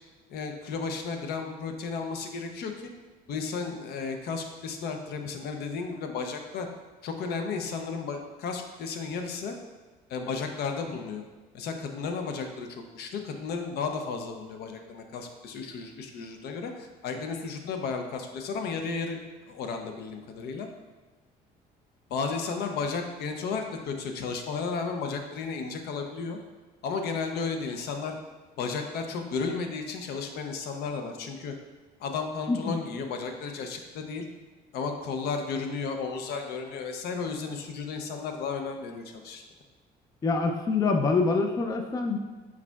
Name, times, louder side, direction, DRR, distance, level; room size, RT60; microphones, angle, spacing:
voice 1, 0.3-2.9 3.3-6.7 7.0-9.5 10.1-11.2 11.5-19.2 19.5-20.7 22.1-26.4 26.8-28.2 28.6-31.5 32.0-34.3 34.7-39.4, left 5 dB, 70° left, 5 dB, 0.6 m, -33 dB
voice 2, 40.2-42.2, left 4 dB, 20° left, 4 dB, 0.4 m, -25 dB
4.7 x 4.4 x 2.3 m, 1.3 s
cardioid pair, 110°, 17 cm